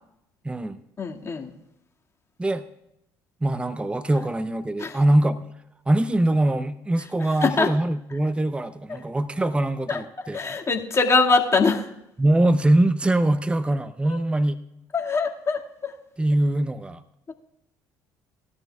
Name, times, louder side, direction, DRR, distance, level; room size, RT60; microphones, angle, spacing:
voice 1, 0.4-0.8 2.4-2.6 3.4-5.4 5.9-10.4 12.2-14.6 16.2-17.0, right 1 dB, 10° right, 12 dB, 0.7 m, -22 dB
voice 2, 1.0-1.5 4.8-5.0 7.4-7.7 9.9-10.0 10.3-11.9 14.0-14.2 14.9-15.9, left 4 dB, 35° left, 0 dB, 2.1 m, -23 dB
19.5 x 13.0 x 2.4 m, 0.85 s
supercardioid pair, 70°, 9 cm